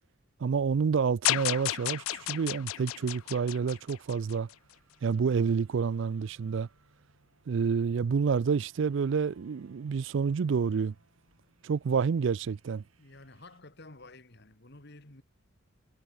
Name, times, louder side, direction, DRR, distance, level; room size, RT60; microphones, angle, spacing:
voice 1, 0.4-4.5 5.0-6.7 7.5-10.9 11.6-12.8, right 6 dB, 60° right, 0.4 m, -28 dB
sound 1, 1.2-4.5, left 16 dB, 80° left, 0.3 m, -32 dB
sound 2, 2.8-13.6, right 3 dB, 80° right, 5.7 m, -66 dB
voice 2, 13.0-15.2, left 2 dB, 55° left, 2.6 m, -51 dB
head